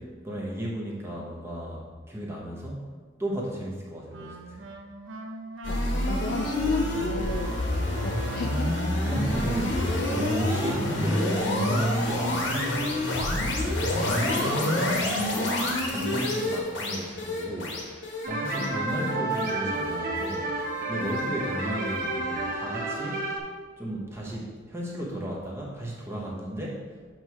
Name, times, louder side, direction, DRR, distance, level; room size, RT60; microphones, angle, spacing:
voice 1, 0.0-2.9 3.2-4.7 9.0-17.9 18.3-23.3 23.8-27.0, right 1 dB, 15° right, -3 dB, 1.0 m, -34 dB
Wind instrument woodwind instrument, 4.1-11.5, right 2 dB, 80° right, 0.6 m, -41 dB
sound 1, 5.6-20.8, left 1 dB, 65° left, 1.1 m, -28 dB
voice 2, 5.7-7.6 7.9-8.8 14.6-15.0 18.6-18.8 21.2-21.5, left 3 dB, 45° left, 5 dB, 0.3 m, -33 dB
sound 2, 18.2-23.4, right 2 dB, 45° right, 0.9 m, -30 dB
7.7 x 3.1 x 4.6 m, 1.5 s
head